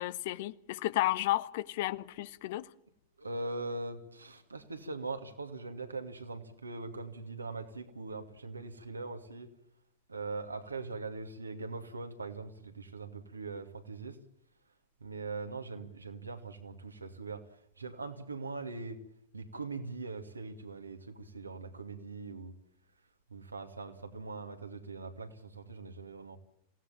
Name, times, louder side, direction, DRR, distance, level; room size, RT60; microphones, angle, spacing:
voice 1, 0.0-2.7, left 16 dB, 50° left, 0.9 m, -32 dB
voice 2, 3.2-9.5 10.1-14.2 15.0-17.4 17.8-19.0 19.3-22.5 23.3-26.4, right 3 dB, 80° right, 2.6 m, -41 dB
28.0 x 17.5 x 7.2 m
figure-of-eight pair, 90°, 0 cm